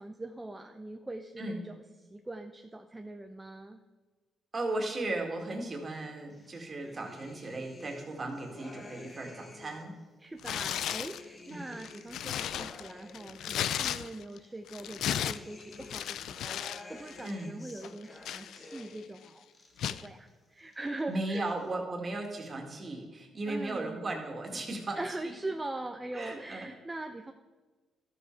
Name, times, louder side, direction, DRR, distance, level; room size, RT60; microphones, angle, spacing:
voice 1, 0.0-1.7 2.1-3.8 10.2-19.5 19.8-21.5 23.5-24.0 25.0-27.3, right 2 dB, 15° right, 5 dB, 0.6 m, -41 dB
voice 2, 4.5-9.9 11.5-11.6 17.2-17.5 21.1-25.0 25.2-25.3 26.1-26.7, right 2 dB, 30° right, 2 dB, 2.1 m, -36 dB
sound 1, 6.3-10.0 10.4-13.9 14.3-19.2 19.4-20.3 20.6-21.4, left 2 dB, 25° left, 1.5 m, -51 dB
Tearing, 10.4-11.2 11.7-14.4 14.7-16.8 17.1-17.3 17.8-19.0 19.8-20.1, left 10 dB, 75° left, 0.4 m, -35 dB
12.5 x 7.5 x 4.6 m, 1.3 s
cardioid pair, 90°, 0 cm